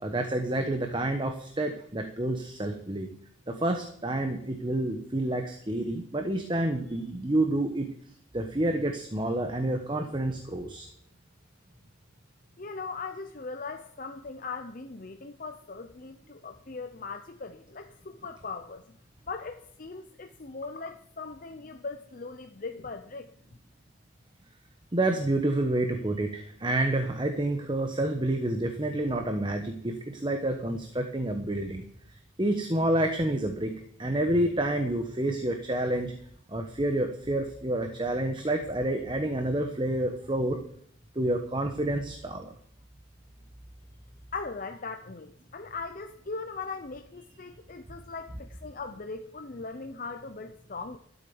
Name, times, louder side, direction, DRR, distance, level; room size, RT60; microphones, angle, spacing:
voice 1, 0.0-3.1 3.5-7.9 8.3-10.9 24.9-31.8 32.4-33.7 34.0-36.1 36.5-40.6 41.1-42.5, right 1 dB, 25° right, 5 dB, 1.1 m, -28 dB
voice 2, 12.6-19.0 19.3-23.3 44.3-51.0, left 4 dB, 45° left, 6 dB, 0.7 m, -39 dB
13.0 x 8.1 x 7.1 m, 0.66 s
head